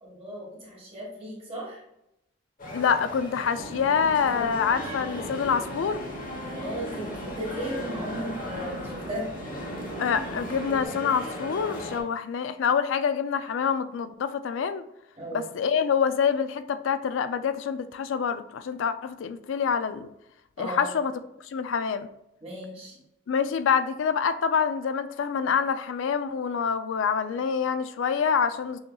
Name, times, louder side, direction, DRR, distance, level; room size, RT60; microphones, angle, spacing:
voice 1, 0.0-1.8 6.5-9.3 15.2-15.4 20.6-20.9 22.4-23.0, right 1 dB, 30° right, -5 dB, 1.4 m, -36 dB
sound 1, 2.6-12.0, left 1 dB, 45° left, 1.0 m, -37 dB
voice 2, 2.7-6.0 10.0-14.8 15.3-20.1 20.6-21.1 21.4-22.1 23.3-28.8, left 6 dB, 75° left, 12 dB, 0.3 m, -26 dB
sound 2, 3.5-10.8, right 1 dB, 55° right, 0.5 m, -42 dB
6.3 x 2.9 x 2.3 m, 0.83 s
head